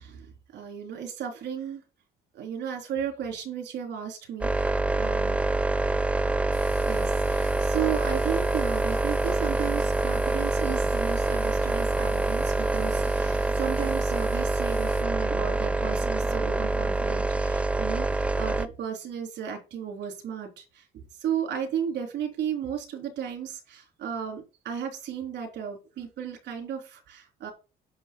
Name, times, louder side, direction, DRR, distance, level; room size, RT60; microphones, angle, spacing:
voice 1, 0.0-1.8 2.3-5.4 6.9-27.5, right 8 dB, 65° right, 2 dB, 3.7 m, -34 dB
sound 1, 4.4-18.7, right 2 dB, 5° right, 0.5 m, -26 dB
sound 2, 6.5-15.0, left 6 dB, 65° left, 6.0 m, -49 dB
10.0 x 6.7 x 5.3 m, 0.30 s
cardioid pair, 140°, 19 cm